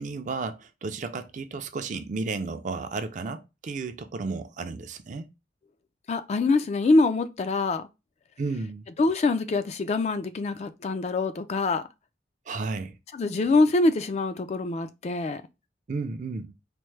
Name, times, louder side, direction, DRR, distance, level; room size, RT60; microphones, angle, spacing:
voice 1, 0.0-5.3 8.4-8.8 12.5-12.9 15.9-16.5, right 4 dB, 45° right, 0.4 m, -33 dB
voice 2, 6.1-7.8 9.0-11.8 13.1-15.4, left 3 dB, 40° left, 0.3 m, -24 dB
4.3 x 2.0 x 3.2 m
head